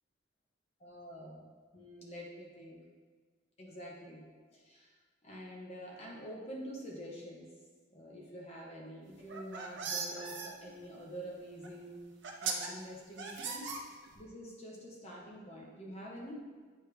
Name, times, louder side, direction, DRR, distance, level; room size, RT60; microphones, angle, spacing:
voice 1, 0.8-1.5 1.7-2.8 3.6-4.9 5.2-7.5 7.9-12.1 12.4-13.8 14.1-16.6, equal, 35° left, -3 dB, 0.9 m, -47 dB
sound 1, 9.2-10.5 11.6-11.7 12.2-12.7 13.2-14.2, right 5 dB, 75° right, 0.7 m, -38 dB
8.6 x 3.3 x 3.3 m, 1.5 s
head